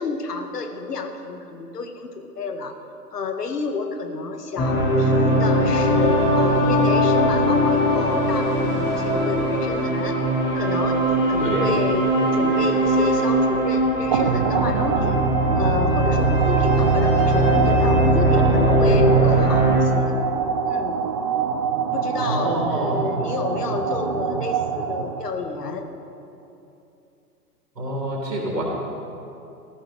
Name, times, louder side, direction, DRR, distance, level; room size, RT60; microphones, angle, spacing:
voice 1, 0.0-2.8 3.1-10.2 10.5-15.2 15.6-20.2 20.6-21.0 21.9-25.9, left 4 dB, 75° left, 6 dB, 1.8 m, -30 dB
sound 1, 4.6-19.8, right 1 dB, 25° left, 4.4 m, -20 dB
voice 2, 11.4-11.8 18.3-19.4 22.2-22.9 27.8-28.6, right 1 dB, 85° right, -2 dB, 3.6 m, -27 dB
sound 2, 14.1-25.5, right 6 dB, 25° right, 0.3 m, -25 dB
18.0 x 14.5 x 4.4 m, 2.8 s
figure-of-eight pair, 105°, 48 cm